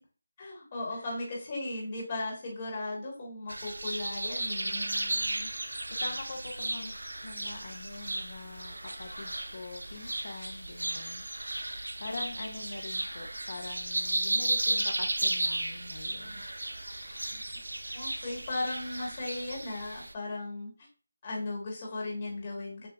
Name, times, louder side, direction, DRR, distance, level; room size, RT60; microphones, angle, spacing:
voice 1, 0.4-4.8 17.9-20.7 21.2-22.9, left 2 dB, 30° left, -3 dB, 1.2 m, -36 dB
sound 1, 3.5-20.1, right 1 dB, 75° right, 0.5 m, -34 dB
voice 2, 4.6-6.9 7.2-11.2 12.0-16.4, left 3 dB, 45° left, 3 dB, 0.6 m, -44 dB
6.7 x 2.2 x 2.2 m, 0.36 s
figure-of-eight pair, 165°, 0 cm